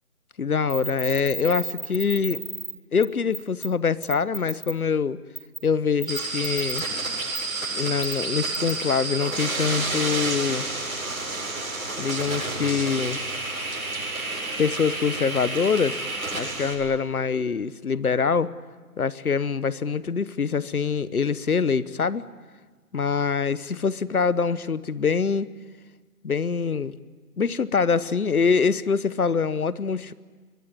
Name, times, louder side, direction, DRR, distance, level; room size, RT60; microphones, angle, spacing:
voice 1, 0.4-2.4 2.9-5.2 5.6-6.8 7.7-10.7 12.0-13.2 14.6-16.0 16.3-18.5 19.0-22.2 22.9-25.5 26.2-26.9 27.4-30.1, left 5 dB, 70° left, 17 dB, 1.2 m, -24 dB
sound 1, 0.7-2.7 3.0-3.1 3.3-3.7 4.0-4.7 5.4-5.6 6.0-6.8 7.3-7.4 8.0-8.1 8.5-8.7, right 3 dB, 35° right, 1.7 m, -33 dB
sound 2, 6.1-16.7, right 2 dB, 65° right, 7.8 m, -30 dB
25.5 x 22.5 x 9.6 m, 1.4 s
hypercardioid pair, 180°, 45 cm